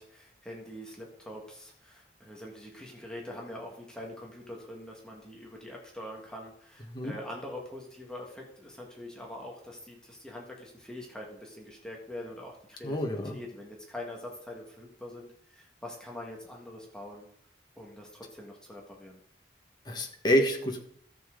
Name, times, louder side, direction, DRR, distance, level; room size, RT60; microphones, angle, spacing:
voice 1, 0.0-17.3 17.8-19.2, left 1 dB, 5° left, -2 dB, 1.8 m, -44 dB
voice 2, 12.8-13.4 19.8-20.8, equal, 25° left, 2 dB, 1.6 m, -27 dB
13.5 x 7.3 x 3.8 m, 0.66 s
head